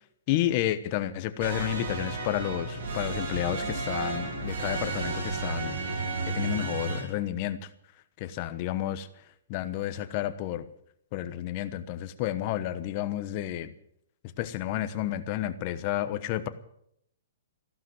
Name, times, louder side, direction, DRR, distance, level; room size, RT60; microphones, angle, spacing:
voice 1, 0.3-5.8 6.3-7.6 8.2-9.1 9.5-10.6 11.1-13.7 14.4-16.5, left 13 dB, 30° left, 11 dB, 1.1 m, -31 dB
sound 1, 1.4-7.0, right 3 dB, 60° right, 5.4 m, -32 dB
14.5 x 12.0 x 7.8 m, 0.72 s
hypercardioid pair, 165°, 0 cm